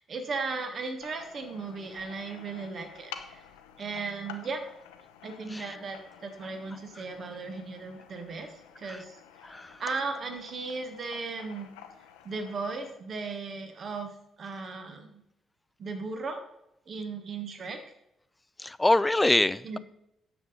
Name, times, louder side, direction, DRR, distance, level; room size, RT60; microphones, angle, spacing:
voice 1, 0.0-3.4 3.8-4.6 5.2-9.2 9.8-11.7 12.2-14.1 14.4-15.2 15.8-16.4 16.9-17.8 19.6-19.8, right 4 dB, 45° right, 6 dB, 1.5 m, -36 dB
sound 1, 1.0-12.9, left 9 dB, 70° left, 0.7 m, -50 dB
voice 2, 9.4-9.8 18.6-19.8, left 2 dB, 15° left, 18 dB, 0.4 m, -25 dB
9.2 x 7.3 x 5.0 m, 0.80 s
figure-of-eight pair, 40°, 0 cm